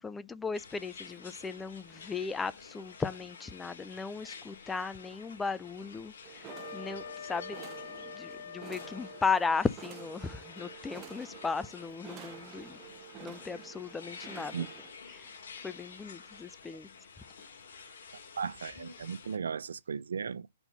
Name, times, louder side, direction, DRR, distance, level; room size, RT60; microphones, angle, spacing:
voice 1, 0.0-12.8 13.2-14.7 15.1-15.3 15.6-16.9, left 4 dB, 5° left, 0.3 m, -36 dB
sound 1, 0.5-19.4, left 5 dB, 70° left, 2.7 m, -50 dB
sound 2, 6.2-14.9, right 9 dB, 20° right, 1.1 m, -49 dB
Wind instrument woodwind instrument, 6.5-9.7, left 7 dB, 85° left, 0.5 m, -45 dB
voice 2, 18.4-20.5, right 6 dB, 90° right, 0.5 m, -36 dB
5.3 x 4.5 x 5.5 m
hypercardioid pair, 160°, 0 cm